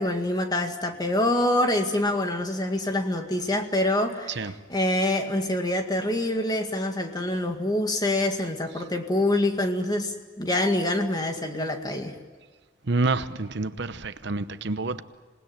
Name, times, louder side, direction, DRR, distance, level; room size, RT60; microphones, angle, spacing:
voice 1, 0.0-12.2, left 1 dB, 20° left, 2.0 m, -26 dB
voice 2, 12.9-15.0, right 3 dB, 60° right, 0.9 m, -28 dB
27.0 x 19.5 x 8.9 m
head